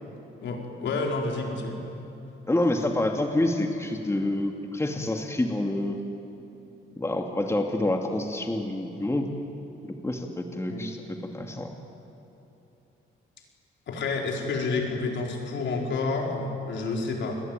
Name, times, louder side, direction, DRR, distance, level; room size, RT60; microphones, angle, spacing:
voice 1, 0.4-1.8 10.7-10.9 13.9-17.4, left 3 dB, 70° left, 1 dB, 4.7 m, -29 dB
voice 2, 2.5-6.0 7.0-9.3 10.0-11.7, left 1 dB, 15° left, 3 dB, 2.4 m, -27 dB
29.0 x 21.0 x 9.2 m, 3.0 s
cardioid pair, 90°, 20 cm